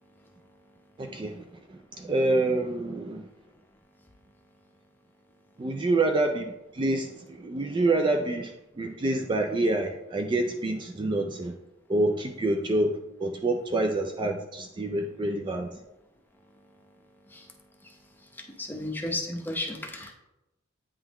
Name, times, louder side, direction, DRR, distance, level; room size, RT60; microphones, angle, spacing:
voice 1, 1.0-3.3 5.6-11.6 11.9-15.8, right 2 dB, 25° right, 4 dB, 0.3 m, -27 dB
voice 2, 18.6-20.1, left 1 dB, 10° left, 1 dB, 0.8 m, -33 dB
8.6 x 3.8 x 3.0 m, 0.92 s
head